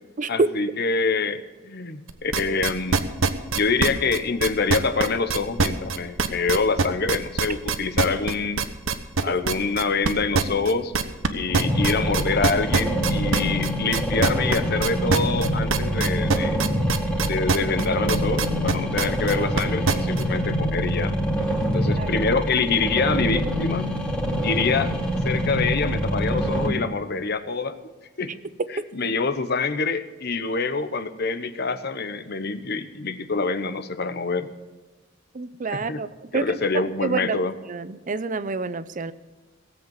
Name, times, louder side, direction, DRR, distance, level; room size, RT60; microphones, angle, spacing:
voice 1, 0.3-3.1 3.5-8.6 9.2-10.9 11.3-16.6 17.3-21.1 21.7-23.9 24.4-24.9 25.2-27.8 28.2-28.3 28.9-34.5 35.7-36.0 36.3-37.5, left 4 dB, 55° left, 11 dB, 1.0 m, -25 dB
sound 1, 2.1-20.2, right 4 dB, 80° right, 1.1 m, -23 dB
sound 2, 11.5-26.7, equal, 5° left, 2.4 m, -25 dB
voice 2, 35.3-36.6 37.0-37.4 37.7-39.1, right 4 dB, 40° right, 14 dB, 0.6 m, -29 dB
17.5 x 8.1 x 7.2 m, 1.2 s
head